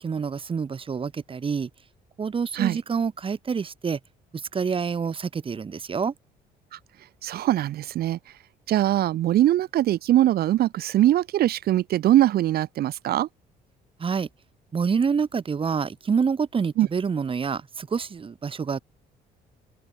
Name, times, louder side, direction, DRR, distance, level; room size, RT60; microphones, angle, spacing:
voice 1, 0.0-1.7 2.2-4.0 4.5-6.1 14.0-14.3 14.7-18.8, right 6 dB, 30° right, 3.7 m, -27 dB
voice 2, 7.2-8.2 8.7-13.3 16.8-16.9, right 13 dB, 65° right, 2.1 m, -22 dB
open air
cardioid pair, 110°, 17 cm